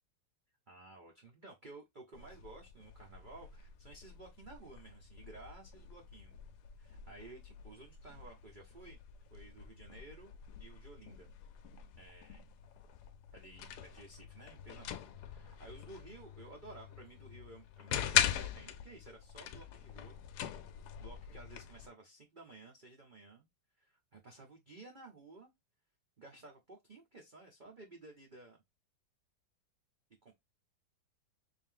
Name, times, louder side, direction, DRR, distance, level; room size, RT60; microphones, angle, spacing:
voice 1, 0.7-6.3 6.8-9.0 9.3-10.3 10.6-11.3 12.0-12.4 13.3-20.2 21.0-23.5 23.8-25.5 26.2-28.6 30.2-30.3, right 2 dB, 80° right, 0.4 m, -54 dB
sound 1, 2.1-21.9, left 10 dB, 70° left, 1.0 m, -42 dB
3.6 x 2.7 x 3.6 m
omnidirectional pair, 2.0 m